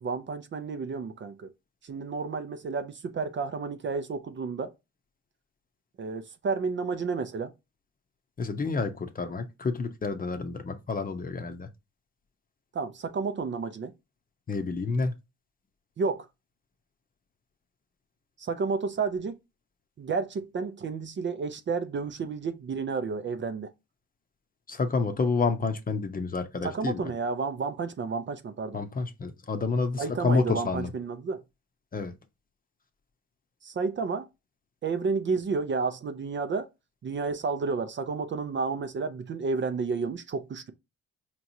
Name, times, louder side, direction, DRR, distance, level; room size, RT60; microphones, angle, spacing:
voice 1, 0.0-1.5 1.8-4.7 6.0-7.5 12.7-13.9 16.0-16.3 18.4-19.4 20.0-23.7 26.6-28.8 30.0-31.4 33.6-34.3 34.8-36.7 37.0-40.7, right 4 dB, 40° right, 0.5 m, -31 dB
voice 2, 8.4-11.7 14.5-15.1 24.7-27.1 28.7-30.9 31.9-32.1, left 4 dB, 30° left, 0.7 m, -29 dB
4.6 x 3.0 x 2.6 m
cardioid pair, 90°, 30 cm